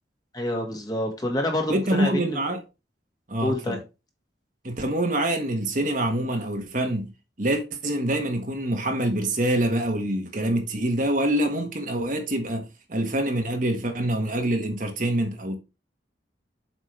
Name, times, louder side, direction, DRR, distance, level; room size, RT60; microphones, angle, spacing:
voice 1, 0.3-2.4 3.4-3.8, left 1 dB, 20° left, 1.8 m, -27 dB
voice 2, 1.7-2.6 3.3-3.8 4.6-7.1 7.4-15.6, right 1 dB, 45° right, 1.4 m, -25 dB
7.5 x 5.1 x 3.3 m
head